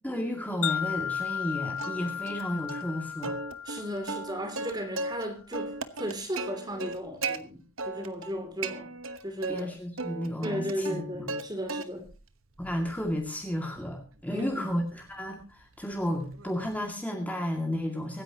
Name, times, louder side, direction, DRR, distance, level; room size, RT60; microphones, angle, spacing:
voice 1, 0.0-3.4 9.5-11.4 12.6-18.2, equal, 5° left, 1 dB, 2.2 m, -33 dB
Wind chime, 0.6-4.9, left 8 dB, 75° left, 0.7 m, -35 dB
Plucked string instrument, 1.8-2.4 2.7-2.8 3.2-5.2 5.5-7.4 7.8-8.3 8.6-9.6 10.0-11.4 11.7-12.2 12.6-16.8, right 3 dB, 65° right, 1.2 m, -37 dB
voice 2, 3.6-8.9 9.2-9.8 10.4-12.1 14.2-14.7, equal, 20° right, 6 dB, 2.8 m, -35 dB
24.5 x 10.0 x 2.9 m, 0.33 s
head